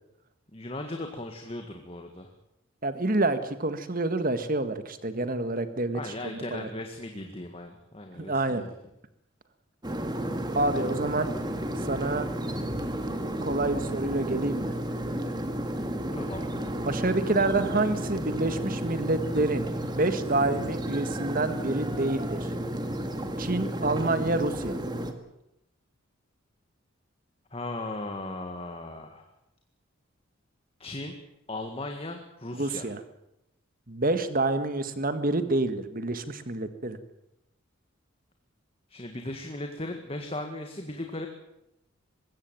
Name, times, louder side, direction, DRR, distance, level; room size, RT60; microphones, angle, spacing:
voice 1, 0.5-2.3 5.9-8.7 16.1-16.4 27.5-29.3 30.8-31.1 31.5-32.9 38.9-41.3, left 2 dB, 25° left, 4 dB, 1.8 m, -37 dB
voice 2, 2.8-6.7 8.1-8.6 10.5-11.3 11.8-12.3 13.4-14.7 16.9-22.5 23.4-24.8 32.5-33.0 33.9-37.0, right 2 dB, 40° right, 10 dB, 1.7 m, -28 dB
sound 1, 9.8-25.1, right 1 dB, 20° right, 1.8 m, -32 dB
21.5 x 16.5 x 9.1 m, 0.84 s
head